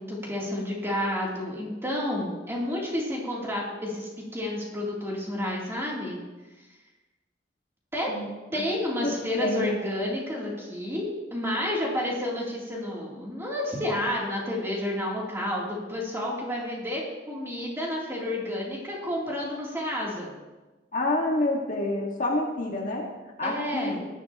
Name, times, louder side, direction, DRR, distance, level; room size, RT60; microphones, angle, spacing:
voice 1, 0.0-6.2 7.9-8.1 8.5-17.0 17.3-20.3 23.4-24.0, left 1 dB, 15° right, -4 dB, 3.1 m, -30 dB
voice 2, 8.1-8.6 9.0-9.8 20.9-23.1 23.4-24.0, left 1 dB, 45° left, -1 dB, 1.8 m, -28 dB
18.5 x 11.0 x 3.0 m, 1.1 s
head